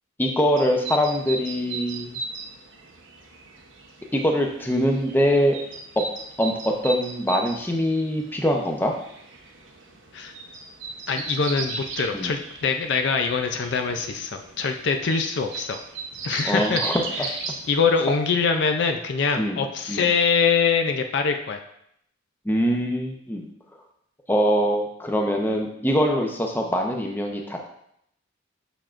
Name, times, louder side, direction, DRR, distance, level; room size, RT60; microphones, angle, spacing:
voice 1, 0.2-2.2 4.1-5.6 6.4-8.9 12.1-12.3 16.4-17.0 19.4-19.6 19.9-20.1 22.4-23.5 24.3-27.7, equal, 10° left, 1 dB, 0.7 m, -23 dB
sound 1, 0.5-18.3, right 3 dB, 65° right, 0.9 m, -37 dB
voice 2, 11.1-15.8 16.2-16.8 17.2-17.3 17.7-21.6, left 5 dB, 60° left, 5 dB, 0.4 m, -23 dB
7.0 x 5.8 x 2.5 m, 0.73 s
head